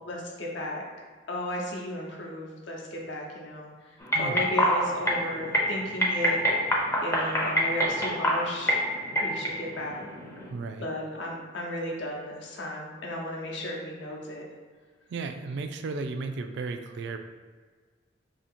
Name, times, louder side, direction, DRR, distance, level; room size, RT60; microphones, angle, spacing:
voice 1, 0.1-0.8 1.3-6.4 7.0-8.8 9.2-10.0 10.8-14.4, left 1 dB, 70° left, -2 dB, 0.7 m, -34 dB
sound 1, 4.0-10.5, equal, 15° left, 0.5 m, -27 dB
voice 2, 4.1-4.5 10.5-10.9 15.1-17.2, right 3 dB, 65° right, 7 dB, 0.3 m, -34 dB
2.8 x 2.7 x 4.3 m, 1.5 s
head